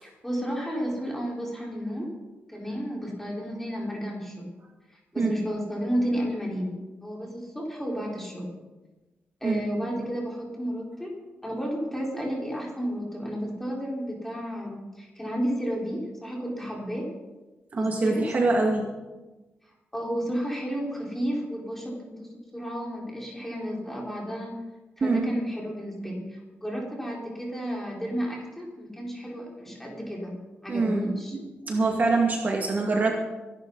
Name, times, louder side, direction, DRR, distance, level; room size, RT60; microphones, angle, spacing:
voice 1, 0.0-2.1 2.5-4.5 5.1-8.5 9.4-11.2 11.4-17.1 17.7-18.3 19.9-24.6 25.0-30.4 30.6-31.4, equal, 5° left, -3 dB, 4.5 m, -32 dB
voice 2, 17.7-18.9 25.0-25.3 30.7-31.1 31.7-33.3, right 3 dB, 40° right, 0 dB, 2.2 m, -24 dB
23.5 x 11.5 x 4.1 m, 1.1 s
wide cardioid pair, 145°, 4 cm